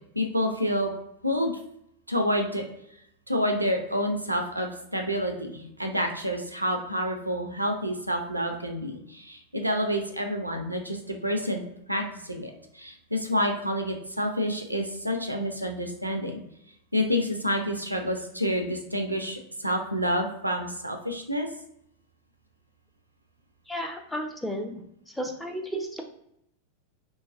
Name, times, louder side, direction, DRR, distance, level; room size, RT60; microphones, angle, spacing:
voice 1, 0.2-0.9 1.2-1.5 2.1-2.6 3.3-11.6 11.9-16.4 16.9-21.5, equal, 85° right, 4 dB, 0.4 m, -28 dB
voice 2, 23.7-26.0, equal, 5° left, 2 dB, 0.4 m, -33 dB
2.8 x 2.2 x 2.4 m, 0.76 s
figure-of-eight pair, 90°, 0 cm